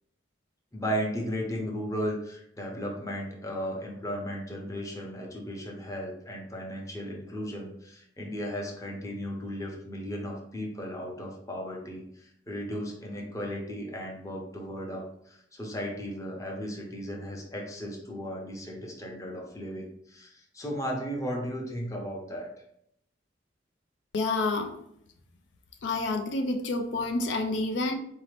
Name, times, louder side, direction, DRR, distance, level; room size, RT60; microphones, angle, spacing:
voice 1, 0.7-22.5, equal, 15° left, -1 dB, 0.7 m, -35 dB
voice 2, 24.1-24.7 25.8-27.9, left 2 dB, 75° left, 5 dB, 0.4 m, -28 dB
4.0 x 2.7 x 3.2 m, 0.74 s
head